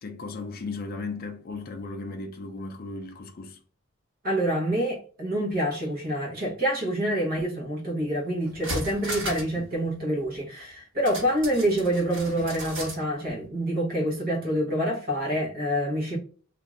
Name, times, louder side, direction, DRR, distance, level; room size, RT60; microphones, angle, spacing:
voice 1, 0.0-3.6 9.5-9.7, left 3 dB, 45° left, 0.4 m, -36 dB
voice 2, 4.2-16.2, right 1 dB, 45° right, 1.0 m, -27 dB
sound 1, 8.0-8.1 8.4-9.6 9.9-10.0 11.1-13.0 13.4-13.5, right 1 dB, 65° right, 1.2 m, -35 dB
2.6 x 2.5 x 3.1 m
head